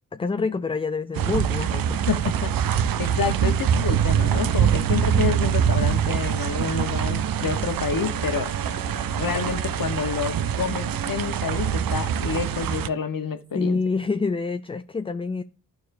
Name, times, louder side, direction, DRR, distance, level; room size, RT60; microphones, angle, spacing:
voice 1, 0.1-2.0 13.5-15.4, left 4 dB, 15° left, 0.3 m, -27 dB
sound 1, 1.2-12.9, right 9 dB, 65° right, 0.5 m, -24 dB
voice 2, 2.1-8.5 9.2-13.8, left 6 dB, 65° left, 1.1 m, -28 dB
Wind instrument woodwind instrument, 7.8-11.4, right 1 dB, 15° right, 0.8 m, -40 dB
11.5 x 4.7 x 2.6 m
cardioid pair, 50°, 37 cm